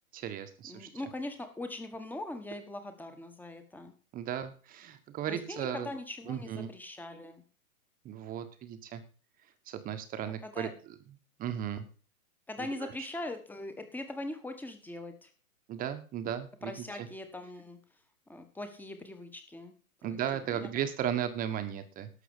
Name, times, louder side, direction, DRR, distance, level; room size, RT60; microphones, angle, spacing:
voice 1, 0.1-0.9 4.1-5.9 6.3-6.7 8.0-9.0 9.7-10.7 11.4-11.9 12.8-12.9 15.7-16.7 17.0-17.1 20.0-22.1, right 10 dB, 20° right, 10 dB, 1.4 m, -35 dB
voice 2, 0.7-3.9 5.3-7.4 10.4-10.7 12.5-15.3 16.6-17.8 18.3-19.7 20.0-20.7, left 2 dB, 5° left, 7 dB, 1.5 m, -41 dB
12.0 x 7.5 x 7.2 m, 0.38 s
hypercardioid pair, 145°, 44 cm